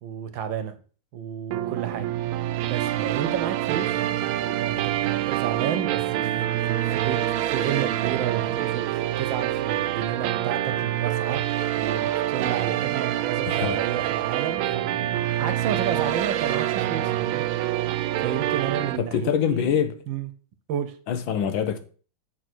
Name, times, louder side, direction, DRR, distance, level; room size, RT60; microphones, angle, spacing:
voice 1, 0.0-0.8 1.1-2.1 2.7-4.0 4.4-17.5 18.2-19.8 20.1-20.3 20.7-20.9, right 9 dB, 70° right, 1.5 m, -32 dB
sound 1, 1.5-19.0, right 13 dB, 85° right, 1.4 m, -26 dB
voice 2, 13.4-13.8 19.0-19.9 21.1-21.8, left 8 dB, 75° left, 1.5 m, -24 dB
7.0 x 4.4 x 6.1 m
omnidirectional pair, 2.2 m